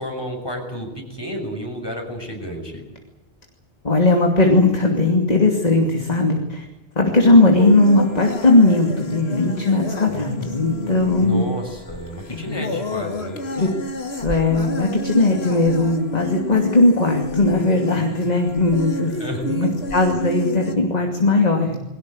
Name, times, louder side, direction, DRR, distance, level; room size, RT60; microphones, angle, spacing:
voice 1, 0.0-2.8 7.5-7.6 11.2-13.4 19.2-19.4, equal, 25° left, 2 dB, 6.8 m, -31 dB
voice 2, 3.8-6.6 7.0-11.4 12.3-12.6 13.6-13.7 14.2-19.1 19.5-21.8, left 2 dB, 40° left, 3 dB, 2.8 m, -18 dB
sound 1, 7.6-20.7, left 2 dB, 80° left, 2.3 m, -31 dB
22.5 x 18.0 x 9.7 m, 0.99 s
omnidirectional pair, 1.1 m